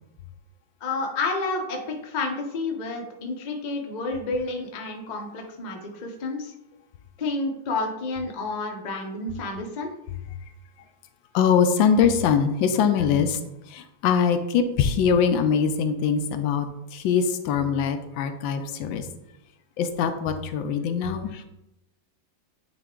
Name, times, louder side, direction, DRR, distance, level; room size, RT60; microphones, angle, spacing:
voice 1, 0.8-6.5 7.2-9.9, left 3 dB, 50° left, 2 dB, 0.5 m, -30 dB
voice 2, 11.3-13.4 13.7-19.1 19.8-21.4, left 7 dB, 75° left, 8 dB, 1.3 m, -22 dB
9.0 x 3.3 x 3.7 m, 0.91 s
omnidirectional pair, 2.2 m